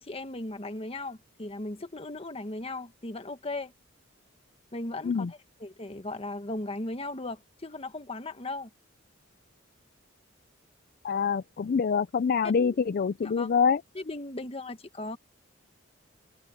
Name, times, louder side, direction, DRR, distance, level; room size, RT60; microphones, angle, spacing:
voice 1, 0.0-3.7 4.7-8.7 12.6-12.8 13.2-13.5 13.9-15.2, left 2 dB, 30° left, 1.4 m, -37 dB
voice 2, 11.0-13.8, left 6 dB, 50° left, 0.4 m, -25 dB
open air
head